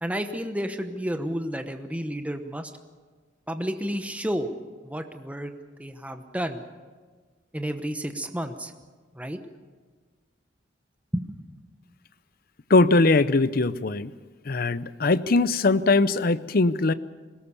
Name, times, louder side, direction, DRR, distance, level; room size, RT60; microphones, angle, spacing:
voice 1, 0.0-2.7 3.5-4.5 4.8-5.5 5.8-6.6 7.5-8.7 9.1-9.4 11.1-11.3, equal, 5° right, 7 dB, 1.0 m, -31 dB
voice 2, 12.7-14.1 14.5-16.9, left 3 dB, 50° left, 15 dB, 0.6 m, -21 dB
21.0 x 18.5 x 6.9 m, 1.4 s
head